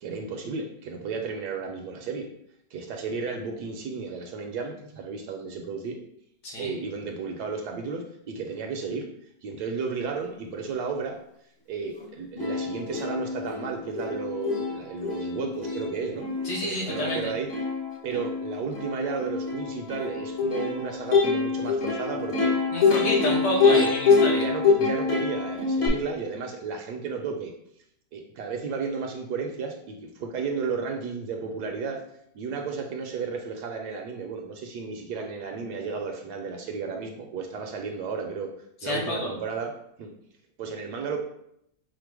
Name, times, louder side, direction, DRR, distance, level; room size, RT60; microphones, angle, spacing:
voice 1, 0.0-2.3 2.7-6.0 6.6-9.0 9.4-11.2 11.7-16.3 16.6-17.5 18.0-22.6 23.7-23.9 24.4-27.5 28.1-32.0 32.3-38.5 38.8-39.7 40.0-40.1 40.6-41.2, right 5 dB, 70° right, 2 dB, 1.1 m, -33 dB
Plucked string instrument, 12.0-12.1 12.4-25.9, left 4 dB, 45° left, 0.9 m, -25 dB
voice 2, 16.4-17.2 22.7-24.5 38.8-39.3, left 1 dB, 65° left, -3 dB, 1.6 m, -29 dB
5.1 x 2.1 x 4.6 m, 0.74 s
omnidirectional pair, 2.0 m